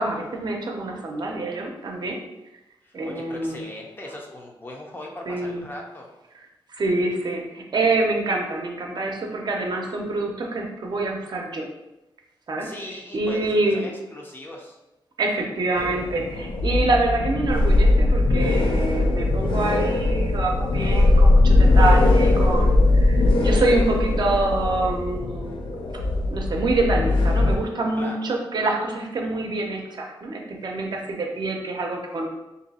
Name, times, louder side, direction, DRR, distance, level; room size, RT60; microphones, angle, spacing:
voice 1, 0.0-2.2 2.9-3.6 5.3-5.7 6.7-11.7 12.5-12.7 13.1-13.9 15.2-25.6 26.3-32.3, right 2 dB, 55° right, 1 dB, 0.6 m, -26 dB
voice 2, 2.8-6.1 12.6-14.8 28.0-28.3, left 1 dB, 25° left, 0 dB, 0.5 m, -39 dB
sound 1, 15.8-27.6, left 2 dB, 90° left, 0.5 m, -20 dB
3.1 x 2.6 x 4.1 m, 0.98 s
wide cardioid pair, 160°, 9 cm